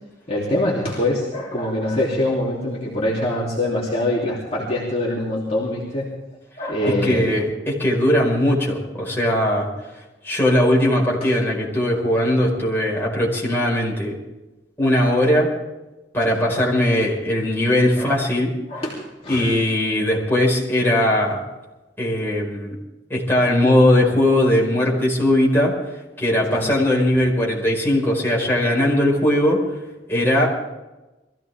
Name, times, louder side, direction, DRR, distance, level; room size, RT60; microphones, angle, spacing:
voice 1, 0.3-6.1 6.6-7.2 11.2-11.3 16.3-16.4 18.0-18.1 18.7-19.5 26.5-26.6, left 1 dB, 35° left, -5 dB, 3.0 m, -24 dB
voice 2, 6.8-9.7 10.2-14.2 14.8-15.5 16.1-18.5 19.3-21.4 22.0-22.7 23.1-25.7 26.2-29.6 30.1-30.5, left 1 dB, 10° left, -4 dB, 4.9 m, -19 dB
22.5 x 15.5 x 3.6 m, 1.1 s
head